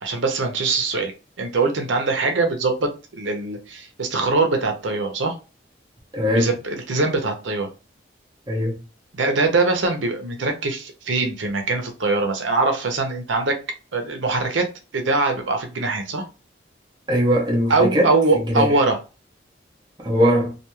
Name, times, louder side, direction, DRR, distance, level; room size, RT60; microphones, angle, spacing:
voice 1, 0.0-1.1 1.4-5.3 6.3-7.7 9.1-13.6 13.9-14.7 14.9-16.3 17.7-19.0, right 3 dB, 85° right, 0.7 m, -22 dB
voice 2, 6.1-6.5 8.5-8.8 17.1-18.1 18.5-18.7 20.0-20.5, equal, 25° right, 0.6 m, -20 dB
2.3 x 2.3 x 2.9 m
head